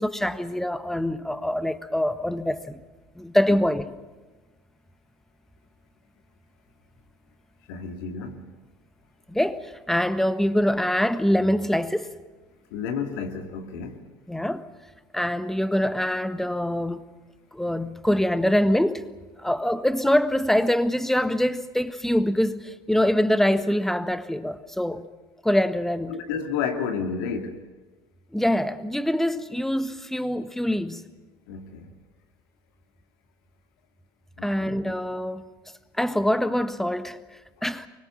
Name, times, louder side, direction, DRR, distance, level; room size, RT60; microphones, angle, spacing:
voice 1, 0.0-2.8 3.1-3.9 9.3-12.1 14.3-14.7 15.1-17.0 17.5-19.1 19.4-25.0 25.4-26.2 28.3-31.0 34.4-35.4 36.0-37.9, left 1 dB, 5° left, 1.5 m, -24 dB
voice 2, 7.7-8.4 12.7-14.1 26.1-27.6 31.5-31.9 34.4-34.8, left 6 dB, 65° left, 2.4 m, -31 dB
24.5 x 21.5 x 7.2 m
figure-of-eight pair, 70°, 13 cm